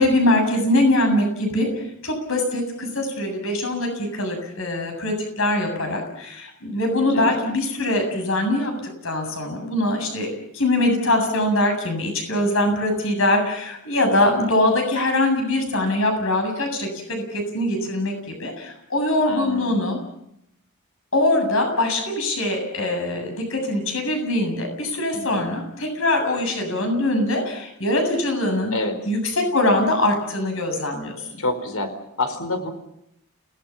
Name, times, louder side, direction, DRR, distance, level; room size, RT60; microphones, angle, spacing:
voice 1, 0.0-1.7 2.0-8.7 9.0-20.0 21.1-28.7 29.1-31.3, left 1 dB, 65° left, 5 dB, 7.7 m, -22 dB
voice 2, 7.0-7.4 14.1-14.4 19.2-19.8 25.1-25.4 28.7-29.0 31.4-32.7, left 2 dB, 80° left, 8 dB, 4.5 m, -28 dB
30.0 x 19.0 x 7.3 m, 0.77 s
head